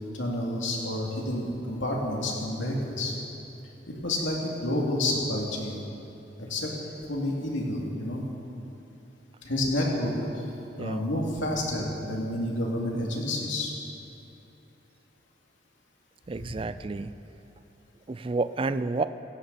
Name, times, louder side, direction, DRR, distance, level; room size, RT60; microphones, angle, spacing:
voice 1, 0.1-3.1 3.9-5.8 6.4-6.7 7.1-8.2 9.4-10.5 10.8-13.7 16.4-16.5, left 1 dB, 80° left, -2 dB, 2.6 m, -29 dB
voice 2, 16.3-17.1 18.1-19.0, right 3 dB, 30° right, 12 dB, 0.3 m, -30 dB
16.5 x 15.5 x 4.2 m, 2.9 s
head